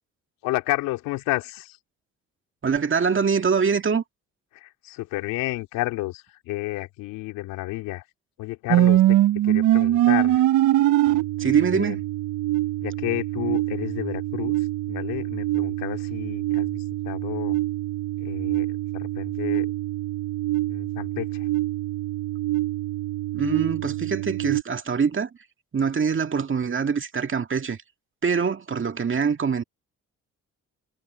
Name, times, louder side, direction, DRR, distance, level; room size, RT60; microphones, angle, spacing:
voice 1, 0.4-1.8 4.5-8.0 8.4-9.2 9.4-10.4 11.7-12.0 12.8-17.6 18.2-19.7 20.7-21.5, left 18 dB, 90° left, 3.3 m, -31 dB
voice 2, 2.6-4.0 11.4-12.0 23.3-25.3 25.7-27.8 28.2-29.6, right 6 dB, 35° right, 2.1 m, -24 dB
sound 1, 8.7-24.6, right 15 dB, 65° right, 0.7 m, -24 dB
supercardioid pair, 70°, 33 cm